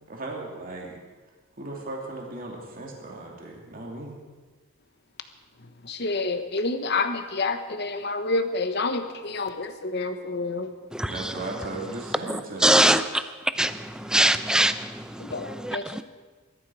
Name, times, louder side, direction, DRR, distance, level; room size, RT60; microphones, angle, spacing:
voice 1, 0.1-1.0 1.6-4.1 11.1-12.7 15.6-15.7, right 2 dB, 40° right, -1 dB, 2.7 m, -36 dB
voice 2, 5.8-10.7 15.2-16.0, left 3 dB, 55° left, 8 dB, 1.2 m, -28 dB
voice 3, 12.3-13.2 13.6-16.0, right 1 dB, 5° right, 10 dB, 0.6 m, -23 dB
22.0 x 13.0 x 4.8 m, 1.3 s
head